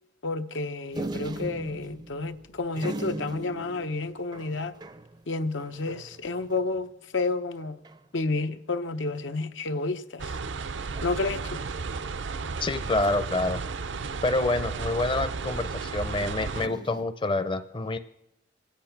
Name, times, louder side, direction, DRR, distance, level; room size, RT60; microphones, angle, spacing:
voice 1, 0.2-4.7 5.3-7.8 8.1-10.3 11.0-11.6, left 3 dB, 85° left, 0.8 m, -30 dB
sound 1, 0.9-6.9 7.3-7.4 7.6-8.1 9.0-9.5 10.9-11.4 13.0-14.3 16.6-17.0, right 2 dB, 25° right, 0.4 m, -40 dB
sound 2, 10.2-16.7, right 4 dB, 75° right, 0.5 m, -33 dB
voice 2, 12.6-13.6 14.2-18.0, left 2 dB, 25° left, 0.5 m, -27 dB
26.0 x 8.7 x 5.9 m
head